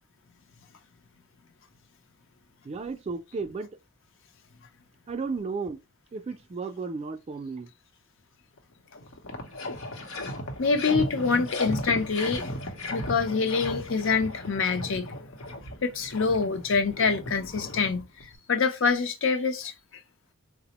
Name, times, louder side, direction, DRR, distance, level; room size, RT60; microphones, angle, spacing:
voice 1, 2.6-3.7 5.1-5.8 6.1-7.7, right 4 dB, 30° right, 0.3 m, -34 dB
sound 1, 8.6-8.7 8.9-18.3, left 1 dB, 90° left, 0.8 m, -36 dB
voice 2, 10.6-12.4 12.9-15.1 15.8-19.7, left 4 dB, 65° left, 0.5 m, -26 dB
4.1 x 2.0 x 2.8 m
head